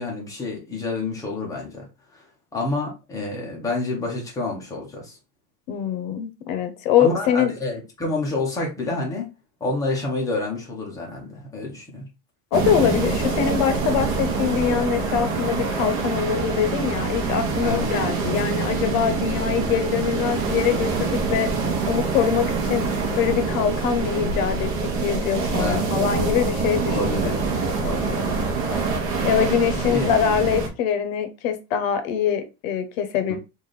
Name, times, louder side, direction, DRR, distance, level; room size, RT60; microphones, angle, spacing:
voice 1, 0.0-1.9 2.1-2.2 2.5-5.2 7.0-9.3 9.6-12.1 17.6-17.9 25.6-25.9 26.8-28.3 28.6-28.9 29.9-30.1 33.3-33.4, left 2 dB, 10° left, 0.5 m, -28 dB
voice 2, 5.7-7.5 12.5-21.5 21.9-22.9 23.1-27.4 29.2-33.4, left 8 dB, 55° left, 0.8 m, -23 dB
sound 1, 12.5-30.7, right 4 dB, 45° right, 0.9 m, -25 dB
3.2 x 2.5 x 3.8 m
supercardioid pair, 170°, 46 cm